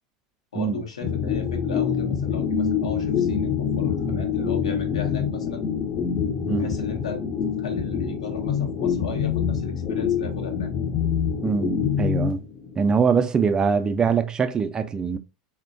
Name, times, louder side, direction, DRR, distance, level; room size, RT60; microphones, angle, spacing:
voice 1, 0.5-5.6 6.6-7.2 7.6-10.7, left 4 dB, 80° left, 0.8 m, -35 dB
sound 1, 1.0-12.9, left 7 dB, 35° left, 0.6 m, -26 dB
voice 2, 11.4-12.4 12.8-15.2, right 5 dB, 25° right, 0.3 m, -23 dB
3.6 x 2.1 x 2.5 m
hypercardioid pair, 85°, 3 cm